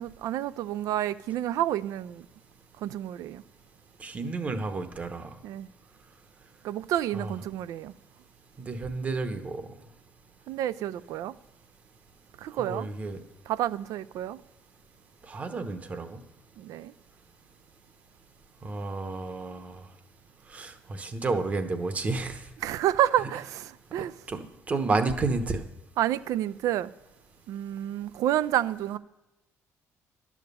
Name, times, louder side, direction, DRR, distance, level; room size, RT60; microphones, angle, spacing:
voice 1, 0.0-2.2 2.8-3.4 5.4-5.7 6.6-7.9 10.5-11.3 12.4-12.9 13.5-14.4 16.6-16.9 22.6-24.1 26.0-26.9 27.5-29.0, right 12 dB, 70° right, 0.4 m, -29 dB
voice 2, 4.0-5.4 7.1-7.3 8.6-9.7 12.6-13.2 15.3-16.2 18.6-19.9 20.5-22.4 24.3-25.6, right 3 dB, 25° right, 0.9 m, -31 dB
11.5 x 7.2 x 6.7 m
cardioid pair, 170°, 6 cm